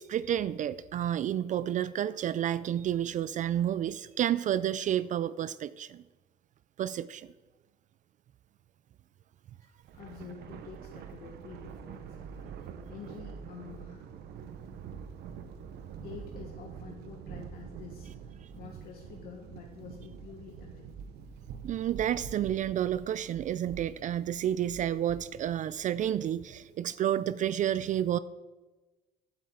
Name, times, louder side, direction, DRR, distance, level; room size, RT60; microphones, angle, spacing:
voice 1, 0.0-6.0 6.8-7.3 21.6-28.2, right 11 dB, 50° right, 16 dB, 0.4 m, -30 dB
voice 2, 9.6-14.1 16.0-21.0, left 6 dB, 65° left, 0 dB, 1.6 m, -48 dB
Thunder, 9.8-26.4, right 7 dB, 75° right, 1.0 m, -46 dB
15.5 x 8.5 x 3.8 m, 1.2 s
cardioid pair, 110°, 17 cm